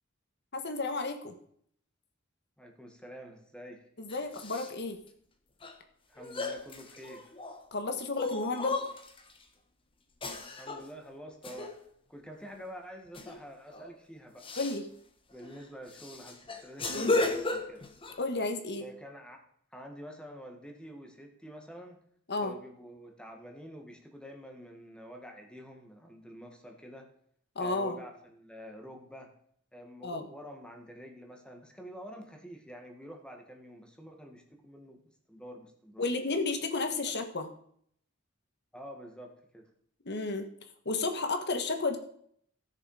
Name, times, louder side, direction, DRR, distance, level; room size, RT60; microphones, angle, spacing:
voice 1, 0.5-1.3 4.0-5.0 7.7-8.8 14.6-14.8 16.9-17.1 18.2-18.8 22.3-22.5 27.5-28.0 30.0-30.3 36.0-37.5 40.0-40.5 40.8-42.0, left 3 dB, 55° left, 7 dB, 1.5 m, -32 dB
voice 2, 2.6-3.9 6.1-7.4 10.6-11.8 12.1-14.5 15.3-17.9 18.8-19.4 19.7-22.0 22.4-27.1 27.6-29.3 29.7-35.0 35.3-36.1 37.0-37.1 38.7-39.7, equal, 5° left, 4 dB, 1.7 m, -48 dB
sound 1, 4.1-4.7 5.6-5.7 6.2-7.6 8.1-9.3 10.2-10.9 11.4-11.8 13.1-13.4 13.7-13.9 14.4-14.8 15.4-15.5 15.9-18.2, left 2 dB, 25° left, 1.1 m, -34 dB
15.5 x 6.7 x 4.9 m, 0.65 s
head